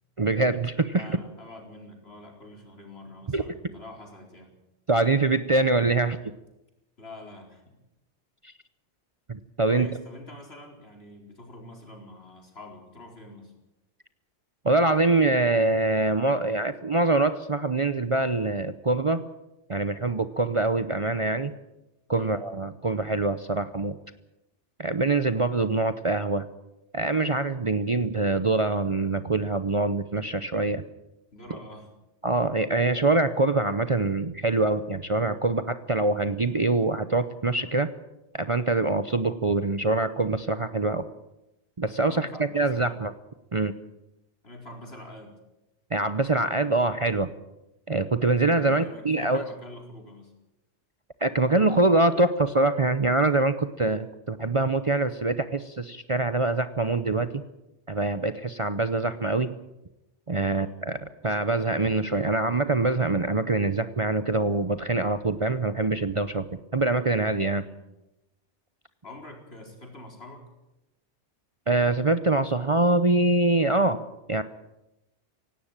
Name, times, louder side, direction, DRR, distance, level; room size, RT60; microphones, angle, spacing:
voice 1, 0.2-1.1 3.3-3.4 4.9-6.2 9.3-9.9 14.6-19.2 19.7-21.5 22.1-24.0 24.8-26.5 26.9-30.8 32.2-37.9 38.3-41.1 41.8-42.3 42.5-43.1 43.5-43.7 45.9-47.3 47.9-49.4 51.2-57.4 57.9-59.5 60.3-67.6 71.7-74.0 74.3-74.4, right 2 dB, 30° right, 11 dB, 0.8 m, -24 dB
voice 2, 0.9-4.5 7.0-7.8 9.6-13.5 22.1-22.4 31.3-31.9 42.0-43.0 44.4-45.3 48.5-50.3 60.3-60.8 67.4-67.8 69.0-70.5, left 1 dB, 60° left, 2 dB, 4.7 m, -45 dB
17.5 x 17.5 x 9.0 m, 0.93 s
omnidirectional pair, 1.2 m